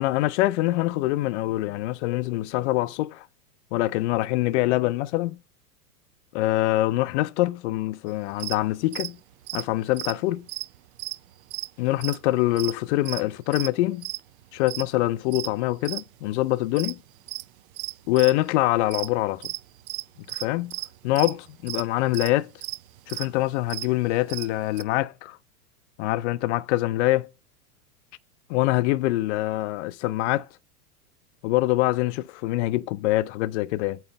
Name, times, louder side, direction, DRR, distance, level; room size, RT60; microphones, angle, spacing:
voice 1, 0.0-3.3 3.7-5.4 6.3-9.2 9.5-10.5 11.8-14.1 14.5-17.0 18.1-19.5 20.3-20.8 21.0-22.5 23.1-25.4 26.0-27.3 28.5-30.5 31.4-34.0, left 17 dB, 50° left, 0.5 m, -24 dB
sound 1, 8.3-8.6 8.9-9.1 9.4-11.2 11.5-11.7 12.0-12.3 12.6-13.2 13.5-13.7 14.0-14.9 15.3-16.1 16.4-18.5 18.8-19.1 19.4-24.8, right 18 dB, 65° right, 0.5 m, -34 dB
8.8 x 3.2 x 6.6 m
hypercardioid pair, 120°, 46 cm